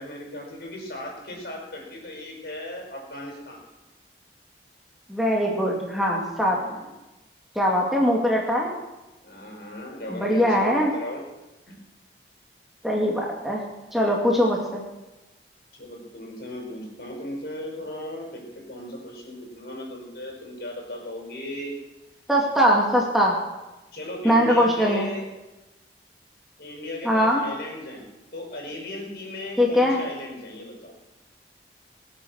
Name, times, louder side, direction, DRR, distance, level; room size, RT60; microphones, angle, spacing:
voice 1, 0.0-3.6 6.5-6.9 9.2-11.3 11.7-11.8 15.7-21.7 23.9-25.3 26.6-28.0 28.3-30.9, left 1 dB, 65° left, -1 dB, 5.8 m, -37 dB
voice 2, 5.1-6.6 7.6-8.7 10.1-10.9 12.8-14.8 22.3-23.4 24.2-25.1 27.0-27.5 29.6-30.0, equal, ahead, -2 dB, 2.4 m, -21 dB
22.5 x 9.0 x 6.5 m, 1.0 s
head